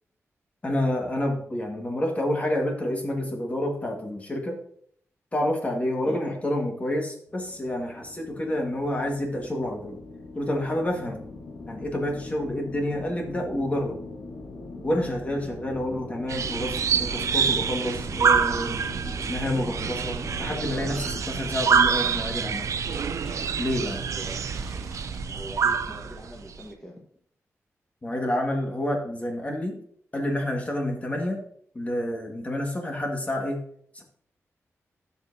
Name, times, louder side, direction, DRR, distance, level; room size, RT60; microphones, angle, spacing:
voice 1, 0.6-4.6 5.3-10.0 10.3-11.2 11.7-14.0 14.8-18.8 19.3-22.7 23.6-24.0 28.0-29.8 30.1-31.4 31.7-33.6 33.9-34.0, left 1 dB, 25° left, 1 dB, 1.7 m, -28 dB
sound 1, 7.3-21.2, left 2 dB, 85° left, 1.3 m, -41 dB
sound 2, 16.3-26.6, right 6 dB, 80° right, 0.5 m, -26 dB
Fart, 19.7-25.2, right 1 dB, 15° right, 1.4 m, -49 dB
voice 2, 23.9-24.4 25.3-26.9, equal, 10° left, -2 dB, 1.4 m, -42 dB
12.5 x 5.5 x 2.7 m, 0.62 s
wide cardioid pair, 110°, 5 cm